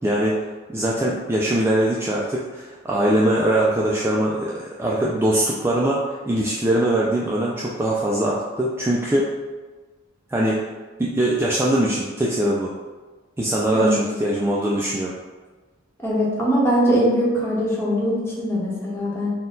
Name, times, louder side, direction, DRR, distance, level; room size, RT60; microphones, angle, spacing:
voice 1, 0.0-0.4 0.7-9.3 10.3-10.6 11.0-12.7 13.4-15.1, right 1 dB, 10° right, -5 dB, 0.3 m, -22 dB
voice 2, 13.7-14.0 16.0-19.3, equal, 15° left, -6 dB, 1.0 m, -21 dB
4.3 x 2.2 x 3.7 m, 1.3 s
head